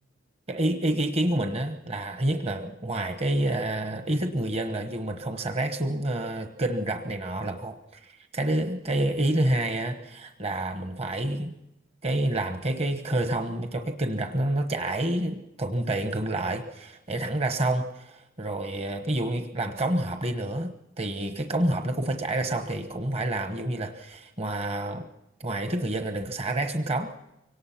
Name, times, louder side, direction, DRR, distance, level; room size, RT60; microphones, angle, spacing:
voice 1, 0.5-11.5 12.0-25.1 25.4-27.1, right 1 dB, 35° right, 6 dB, 1.1 m, -28 dB
24.5 x 18.5 x 5.8 m, 0.90 s
head